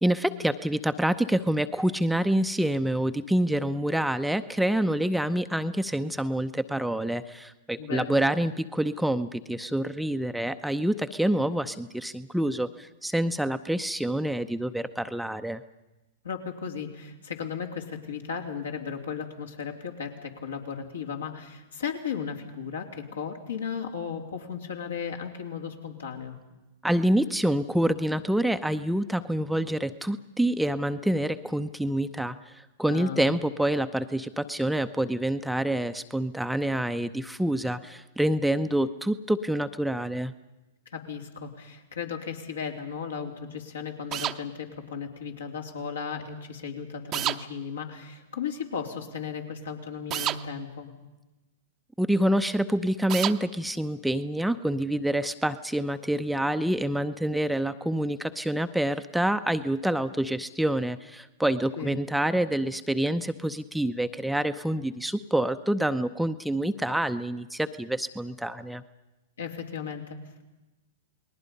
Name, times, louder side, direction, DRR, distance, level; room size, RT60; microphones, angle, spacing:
voice 1, 0.0-15.6 26.8-40.3 52.0-68.8, right 1 dB, ahead, 9 dB, 0.7 m, -27 dB
voice 2, 7.8-8.1 16.2-26.4 32.9-33.3 40.9-50.9 61.8-61.9 69.4-70.4, left 6 dB, 75° left, 2 dB, 3.1 m, -35 dB
sound 1, 44.1-44.4 47.1-47.4 50.1-50.4 53.1-53.4, right 13 dB, 30° right, 0.9 m, -28 dB
29.5 x 20.0 x 5.4 m, 1.0 s
figure-of-eight pair, 105°, 0 cm